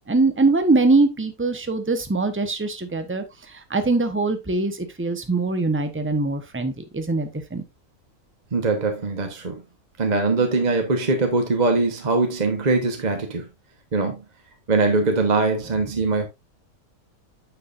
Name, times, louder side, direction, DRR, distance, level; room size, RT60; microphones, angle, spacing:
voice 1, 0.1-7.6, right 3 dB, 10° right, 0.9 m, -22 dB
voice 2, 8.5-9.6 10.0-13.5 13.9-14.2 14.7-16.3, right 3 dB, 30° right, 1.2 m, -22 dB
9.0 x 6.7 x 2.6 m
omnidirectional pair, 1.5 m